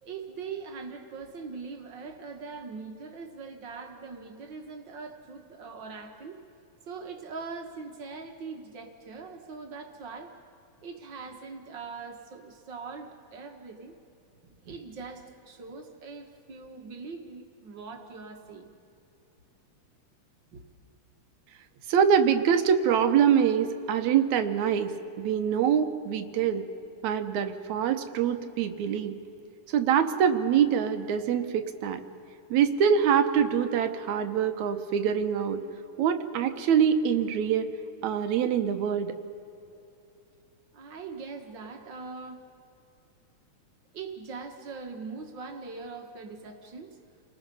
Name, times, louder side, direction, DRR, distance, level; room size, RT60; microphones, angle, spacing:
voice 1, 0.0-6.4 6.9-10.4 10.8-13.9 14.6-18.7 20.5-20.6 40.7-42.4 43.9-46.9, right 4 dB, 45° right, 4 dB, 1.9 m, -41 dB
voice 2, 21.9-26.6 27.0-29.2 29.7-32.0 32.5-35.6 36.0-37.7 38.0-39.1, right 8 dB, 75° right, 8 dB, 2.2 m, -24 dB
29.5 x 19.5 x 5.5 m, 2.8 s
omnidirectional pair, 3.4 m